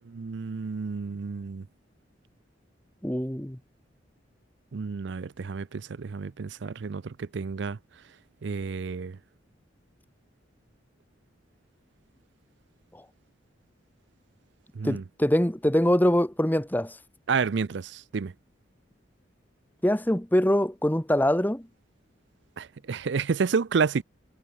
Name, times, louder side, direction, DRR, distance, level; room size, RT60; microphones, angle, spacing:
voice 1, 0.1-1.6 4.7-7.8 8.4-9.2 14.8-15.0 17.3-18.3 22.6-24.0, right 5 dB, 65° right, 0.5 m, -30 dB
voice 2, 3.0-3.6 12.9-13.0 14.8-17.0 19.8-21.7, left 1 dB, 10° left, 1.2 m, -24 dB
head